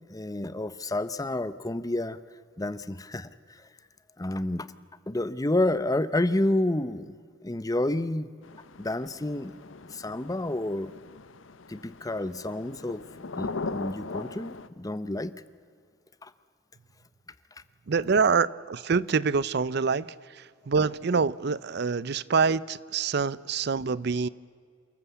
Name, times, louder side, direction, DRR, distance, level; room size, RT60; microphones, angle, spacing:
voice 1, 0.1-2.2 2.6-3.3 4.2-4.7 5.1-7.1 7.4-8.3 8.8-9.5 9.9-10.9 11.7-13.0 13.3-15.3 16.2-16.3, left 1 dB, 20° left, 15 dB, 0.7 m, -29 dB
sound 1, 8.4-14.7, left 3 dB, 85° left, 0.9 m, -40 dB
voice 2, 17.9-24.3, right 5 dB, 55° right, 20 dB, 0.5 m, -26 dB
28.5 x 14.0 x 8.2 m, 2.1 s
head